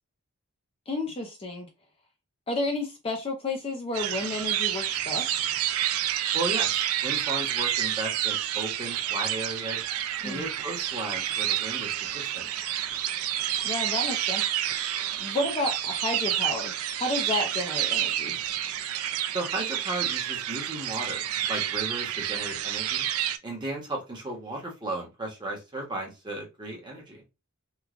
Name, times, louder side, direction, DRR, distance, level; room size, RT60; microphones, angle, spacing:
voice 1, 0.9-1.7 2.5-5.5 10.2-10.5 13.6-14.4 15.2-18.4, left 2 dB, 25° left, 0.5 m, -31 dB
sound 1, 3.9-23.4, right 11 dB, 75° right, 0.3 m, -29 dB
voice 2, 6.3-9.8 10.2-12.5 19.3-21.2 21.5-23.1 23.4-27.2, right 2 dB, 20° right, 0.9 m, -35 dB
3.1 x 2.3 x 2.4 m
head